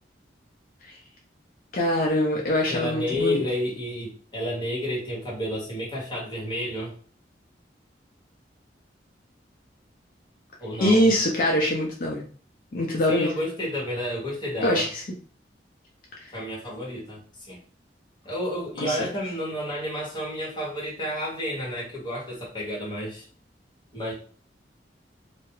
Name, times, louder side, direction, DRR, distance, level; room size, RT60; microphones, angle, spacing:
voice 1, 1.7-3.4 10.8-12.2 12.7-13.4 14.6-15.0 18.8-19.0, left 1 dB, 50° left, -2 dB, 0.4 m, -23 dB
voice 2, 2.6-6.9 10.6-11.1 13.1-14.9 16.3-17.6 18.2-23.3 23.9-24.1, equal, 25° left, -6 dB, 1.1 m, -31 dB
2.3 x 2.1 x 2.9 m, 0.43 s
head